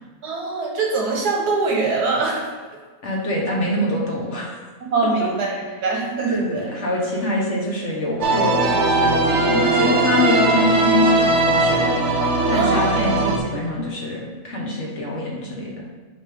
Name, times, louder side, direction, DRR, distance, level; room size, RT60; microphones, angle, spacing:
voice 1, 0.2-2.5 4.8-6.6 12.5-13.1, right 3 dB, 90° right, -1 dB, 1.8 m, -23 dB
voice 2, 3.0-4.6 5.2-5.3 6.3-15.9, left 1 dB, 50° left, -3 dB, 1.4 m, -25 dB
sound 1, 8.2-13.4, right 2 dB, 60° right, 0.9 m, -19 dB
8.1 x 3.6 x 3.6 m, 1.4 s
omnidirectional pair, 1.6 m